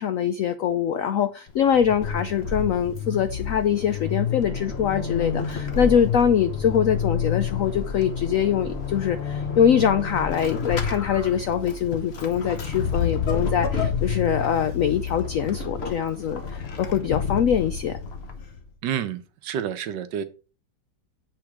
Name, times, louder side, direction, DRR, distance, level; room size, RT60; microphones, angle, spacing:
voice 1, 0.0-18.0, left 8 dB, 75° left, 0.7 m, -23 dB
Vehicle / Accelerating revving vroom / Squeak, 1.5-18.7, left 6 dB, 45° left, 0.9 m, -29 dB
voice 2, 18.8-20.2, right 9 dB, 75° right, 1.3 m, -29 dB
7.8 x 3.8 x 4.8 m
omnidirectional pair, 2.0 m